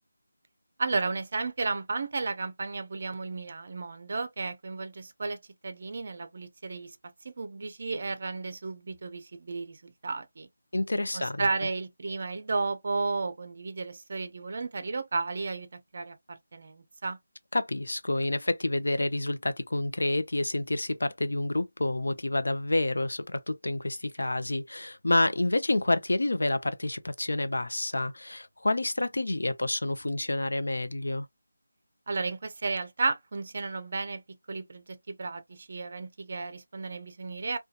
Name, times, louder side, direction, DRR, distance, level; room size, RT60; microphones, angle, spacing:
voice 1, 0.8-5.4 5.6-7.0 7.2-10.5 11.1-15.7 15.9-17.2 32.1-34.2 34.5-37.6, right 3 dB, 35° right, 0.4 m, -33 dB
voice 2, 10.7-11.5 17.5-31.3, left 2 dB, 80° left, 0.5 m, -28 dB
2.7 x 2.2 x 2.3 m
figure-of-eight pair, 175°, 0 cm